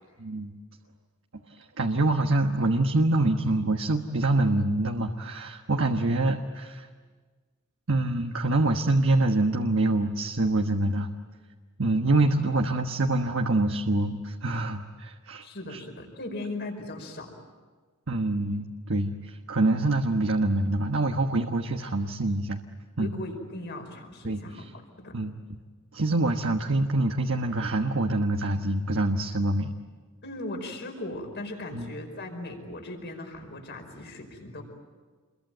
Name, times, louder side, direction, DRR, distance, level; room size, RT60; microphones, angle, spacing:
voice 1, 0.2-0.5 1.6-6.9 7.9-11.1 11.8-15.8 18.1-22.6 23.0-23.1 24.2-24.7 25.1-25.3 25.9-29.7 31.7-31.9, right 2 dB, 65° right, 3 dB, 1.3 m, -25 dB
voice 2, 15.4-17.3 23.0-24.6 25.0-25.1 30.2-34.6, left 1 dB, 55° left, 3 dB, 5.2 m, -38 dB
28.5 x 22.5 x 9.3 m, 1.5 s
head